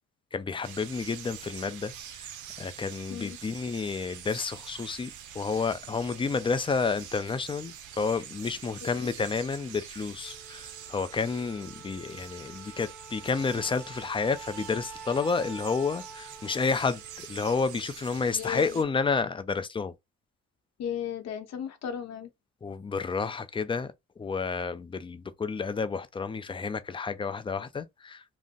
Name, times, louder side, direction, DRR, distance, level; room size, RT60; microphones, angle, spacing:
voice 1, 0.3-1.9 2.2-2.3 2.6-19.9 22.6-28.2, left 4 dB, 20° left, 0.3 m, -30 dB
sound 1, 0.6-18.8, right 9 dB, 75° right, 0.5 m, -46 dB
Wind instrument woodwind instrument, 10.2-18.8, right 4 dB, ahead, 0.9 m, -48 dB
voice 2, 18.3-18.7 20.8-22.3, left 9 dB, 60° left, 0.7 m, -35 dB
2.5 x 2.0 x 3.6 m
cardioid pair, 90°, 30 cm